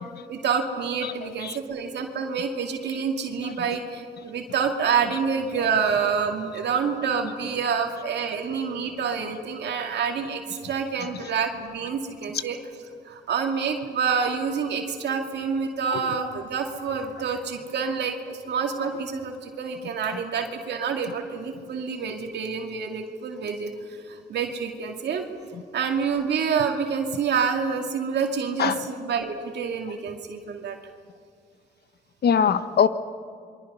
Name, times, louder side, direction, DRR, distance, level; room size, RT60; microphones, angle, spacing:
voice 1, 0.3-12.6 13.1-25.2 25.7-30.8, right 6 dB, 70° right, 3 dB, 2.3 m, -27 dB
voice 2, 1.0-1.6 3.4-3.5 5.6-5.7 15.9-16.2 20.1-20.2 25.5-25.6 28.6-28.8 32.2-32.9, left 7 dB, 65° left, 12 dB, 1.2 m, -24 dB
28.5 x 23.5 x 5.6 m, 2.2 s
supercardioid pair, 60°, 18 cm